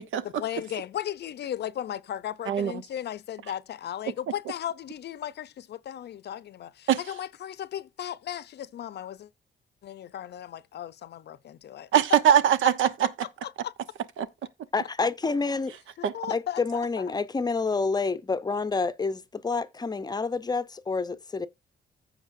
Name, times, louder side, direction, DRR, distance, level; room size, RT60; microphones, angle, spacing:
voice 1, 0.4-9.3 9.8-11.9 13.4-13.7 16.0-17.0, left 11 dB, 60° left, 0.6 m, -36 dB
voice 2, 2.5-2.8 6.9-7.0 11.9-13.1 14.2-14.3 16.0-16.2, right 10 dB, 80° right, 1.0 m, -22 dB
voice 3, 14.7-15.7 16.3-21.5, left 4 dB, 20° left, 0.6 m, -28 dB
15.0 x 5.2 x 2.6 m
cardioid pair, 135°, 20 cm